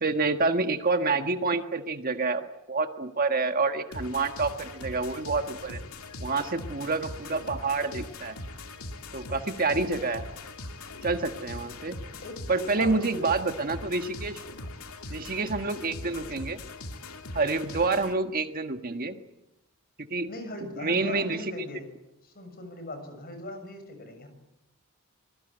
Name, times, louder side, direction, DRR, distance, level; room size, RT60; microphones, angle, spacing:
voice 1, 0.0-5.8 6.2-8.4 9.1-10.2 11.0-12.0 12.5-14.4 15.1-16.6 17.3-19.2 20.0-20.3 20.8-21.4, right 3 dB, 40° right, 6 dB, 1.6 m, -28 dB
sound 1, 3.9-18.1, left 2 dB, 85° left, 2.4 m, -41 dB
voice 2, 12.2-13.3 20.3-21.9 22.2-24.3, left 1 dB, 45° left, 8 dB, 6.8 m, -39 dB
25.5 x 21.5 x 9.1 m, 0.89 s
head